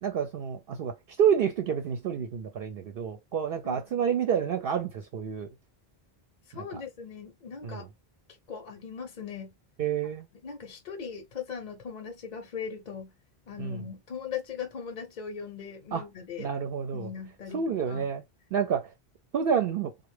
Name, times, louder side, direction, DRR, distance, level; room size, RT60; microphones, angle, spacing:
voice 1, 0.0-5.5 6.5-6.8 7.6-7.9 9.8-10.3 13.6-13.8 15.9-16.0 16.4-17.1 17.5-18.2 18.5-18.9 19.3-19.9, right 7 dB, 65° right, 0.7 m, -29 dB
voice 2, 3.6-4.0 6.5-7.9 8.5-9.5 10.4-13.1 13.5-16.5 16.9-18.1, left 7 dB, 50° left, 0.7 m, -39 dB
3.4 x 2.1 x 3.2 m
omnidirectional pair, 1.0 m